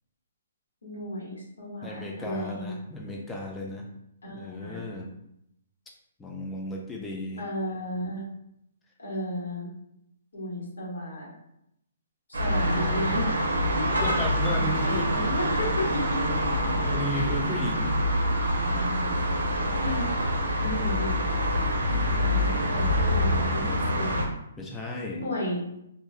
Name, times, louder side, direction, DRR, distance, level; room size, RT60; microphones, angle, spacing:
voice 1, 0.8-2.7 4.2-4.9 7.4-8.2 9.0-9.7 10.3-11.3 12.4-13.3 13.7-14.1 14.5-16.2 17.1-17.3 19.8-20.1 20.6-21.2 21.8-23.6 23.9-24.1 25.2-25.6, left 1 dB, 90° left, -6 dB, 1.5 m, -34 dB
voice 2, 1.8-3.9 4.4-5.1 6.2-7.5 14.0-15.2 16.7-18.0 23.0-24.2 24.6-25.2, left 1 dB, 10° left, -1 dB, 0.5 m, -35 dB
sound 1, 12.3-24.3, equal, 85° right, 0.6 m, -26 dB
2.9 x 2.7 x 2.3 m, 0.78 s
hypercardioid pair, 145°, 0 cm